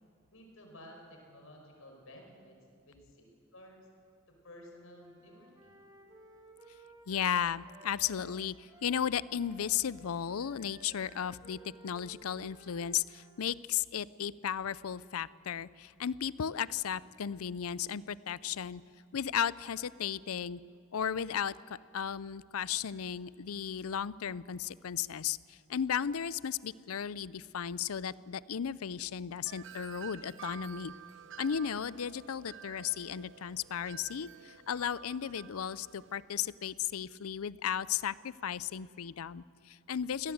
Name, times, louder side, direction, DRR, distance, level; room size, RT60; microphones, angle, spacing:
voice 1, 0.3-2.6 2.9-3.3 3.5-3.9 4.4-5.8, left 1 dB, 70° left, 2 dB, 5.1 m, -53 dB
Wind instrument woodwind instrument, 5.0-13.5, right 1 dB, 20° right, 2.2 m, -57 dB
voice 2, 7.1-18.8 19.1-20.6 20.9-30.9 31.4-40.3, left 8 dB, 90° left, 19 dB, 0.5 m, -35 dB
Wind chime, 29.5-36.2, right 7 dB, 60° right, 1.0 m, -50 dB
24.5 x 17.5 x 8.0 m, 2.3 s
head